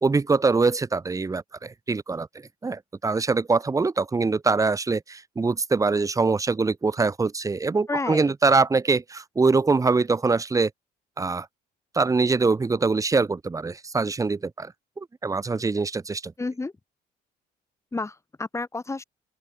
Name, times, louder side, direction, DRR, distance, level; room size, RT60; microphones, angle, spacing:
voice 1, 0.0-2.3 2.6-10.7 11.2-11.5 11.9-16.3, right 4 dB, 20° right, 1.2 m, -23 dB
voice 2, 7.9-8.3 16.4-16.7 17.9-19.0, left 3 dB, 15° left, 2.6 m, -30 dB
open air
cardioid pair, 110°, 17 cm